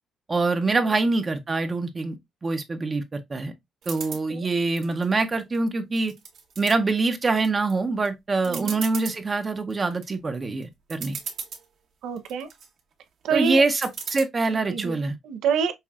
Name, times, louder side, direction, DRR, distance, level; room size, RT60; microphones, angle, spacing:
voice 1, 0.3-2.2 2.4-3.5 3.9-6.1 6.6-11.2 13.3-15.2, right 3 dB, 30° right, 0.6 m, -25 dB
sound 1, 3.8-4.2 4.8-5.6 6.0-6.8 7.3-7.7 8.1-8.2 8.4-9.2 9.7-10.1 10.6-10.7 10.9-11.6 12.2-12.7 13.8-14.2, right 6 dB, 70° right, 1.0 m, -36 dB
voice 2, 12.0-12.5 13.2-13.6 14.7-15.0 15.2-15.7, right 6 dB, 85° right, 0.6 m, -26 dB
5.5 x 2.3 x 2.3 m
cardioid pair, 90°, 0 cm